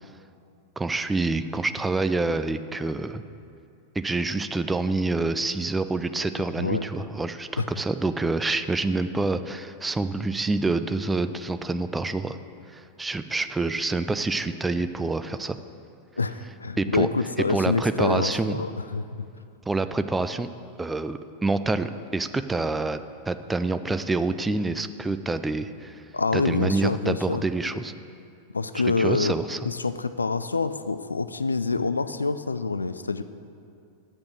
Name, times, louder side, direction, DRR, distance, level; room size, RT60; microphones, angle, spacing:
voice 1, 0.8-3.2 4.0-12.4 12.7-15.6 16.8-17.1 17.5-18.6 19.7-20.5 20.8-23.0 23.3-26.0 26.3-27.9 28.8-29.7, right 3 dB, 10° right, 11 dB, 0.3 m, -27 dB
voice 2, 6.4-6.8 7.6-7.7 16.2-19.3 26.1-27.4 28.5-29.3 29.6-33.2, left 3 dB, 80° left, 12 dB, 0.3 m, -26 dB
8.0 x 6.1 x 7.3 m, 2.4 s
figure-of-eight pair, 90°, 0 cm